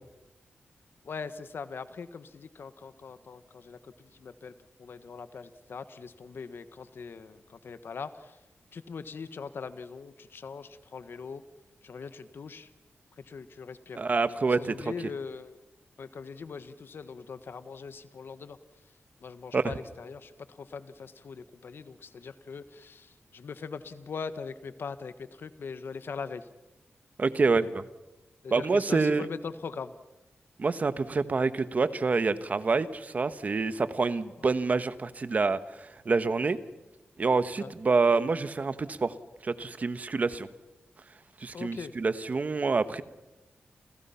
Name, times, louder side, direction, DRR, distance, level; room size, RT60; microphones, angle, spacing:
voice 1, 1.0-3.8 4.2-4.5 4.8-7.4 7.6-8.1 8.7-11.4 11.8-12.7 13.3-14.0 14.6-15.5 16.0-18.6 19.2-23.1 23.3-25.1 25.4-26.4 28.4-29.9 37.6-37.7 41.5-41.9, left 5 dB, 60° left, 12 dB, 1.3 m, -41 dB
voice 2, 13.9-15.1 19.5-19.8 27.2-27.8 28.5-29.3 30.6-36.6 37.2-39.1 39.4-40.5 41.4-43.0, right 4 dB, 40° right, 12 dB, 1.3 m, -27 dB
30.0 x 29.0 x 5.8 m, 0.98 s
wide cardioid pair, 160°, 4 cm